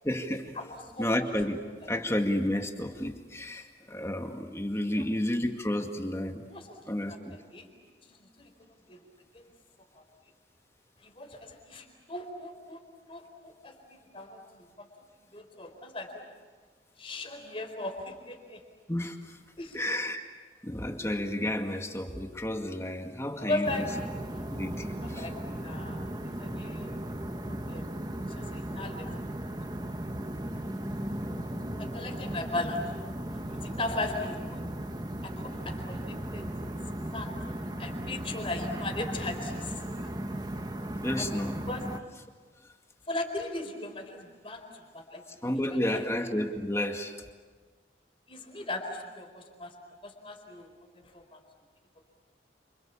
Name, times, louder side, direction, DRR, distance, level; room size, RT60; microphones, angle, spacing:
voice 1, 0.0-0.6 1.0-6.4 6.9-7.4 18.9-19.4 19.7-20.2 20.6-23.9 24.5-25.3 41.0-41.6 45.3-47.2, left 1 dB, 15° left, 4 dB, 2.1 m, -31 dB
voice 2, 0.6-1.1 6.5-7.7 8.0-8.5 8.9-9.0 9.3-9.4 9.9-10.0 11.0-12.8 13.1-14.9 15.3-16.1 17.0-18.6 19.6-19.8 23.4-23.9 25.2-25.4 25.6-26.9 27.5-27.8 28.4-29.1 31.8-33.0 33.5-34.6 35.2-36.5 37.1-37.3 37.8-40.1 41.2-41.3 41.7-41.8 43.1-46.0 48.3-49.7 50.0-51.4, left 2 dB, 30° left, 4 dB, 4.4 m, -38 dB
sound 1, 23.6-42.0, right 1 dB, 25° right, 1.4 m, -36 dB
30.0 x 27.5 x 7.3 m, 1.4 s
head